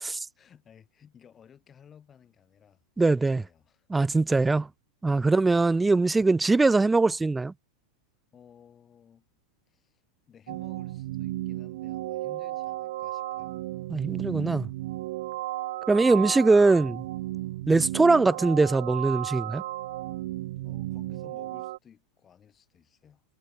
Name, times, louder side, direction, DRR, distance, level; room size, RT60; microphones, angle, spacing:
voice 1, 0.4-3.9 5.2-5.5 8.3-9.3 9.7-10.0 10.3-13.6 20.6-23.2, left 8 dB, 25° left, 5.5 m, -56 dB
voice 2, 3.0-3.4 3.9-4.7 5.0-7.5 13.9-14.7 15.9-17.0 17.7-19.6, right 3 dB, 10° right, 0.4 m, -22 dB
sound 1, 10.5-21.8, right 16 dB, 70° right, 1.2 m, -34 dB
hypercardioid pair, 125°, 0 cm